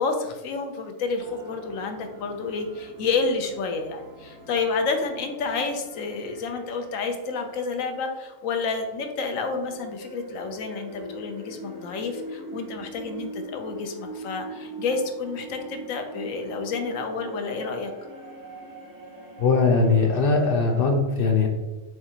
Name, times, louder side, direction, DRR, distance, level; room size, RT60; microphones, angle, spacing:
voice 1, 0.0-17.9, left 4 dB, 80° left, 5 dB, 1.0 m, -29 dB
sound 1, 1.2-8.3 9.1-20.8, right 2 dB, 35° right, 0.3 m, -42 dB
voice 2, 19.4-21.5, left 4 dB, 60° left, 3 dB, 0.6 m, -20 dB
4.9 x 3.4 x 2.8 m, 1.2 s
omnidirectional pair, 1.4 m